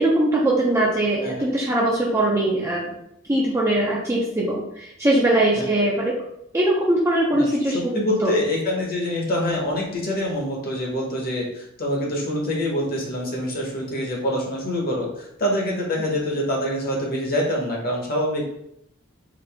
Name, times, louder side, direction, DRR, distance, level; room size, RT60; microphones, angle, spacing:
voice 1, 0.0-2.9 3.3-6.1 6.5-8.3, right 1 dB, 15° right, -4 dB, 0.5 m, -21 dB
voice 2, 7.3-18.4, left 1 dB, 45° left, -2 dB, 1.0 m, -25 dB
3.8 x 2.6 x 3.3 m, 0.77 s
head